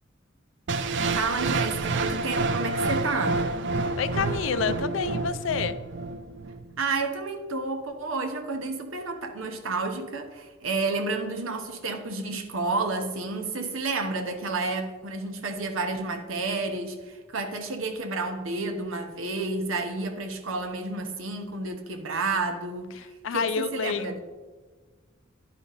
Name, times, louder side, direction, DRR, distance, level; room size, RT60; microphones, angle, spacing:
sound 1, 0.7-6.7, right 3 dB, 60° right, 0.5 m, -28 dB
voice 1, 1.1-3.4 6.8-22.9 23.3-24.2, right 3 dB, 90° right, 6 dB, 1.0 m, -30 dB
voice 2, 4.0-5.8 23.2-24.2, left 6 dB, 70° left, 12 dB, 0.4 m, -28 dB
11.0 x 5.2 x 4.0 m, 1.3 s
head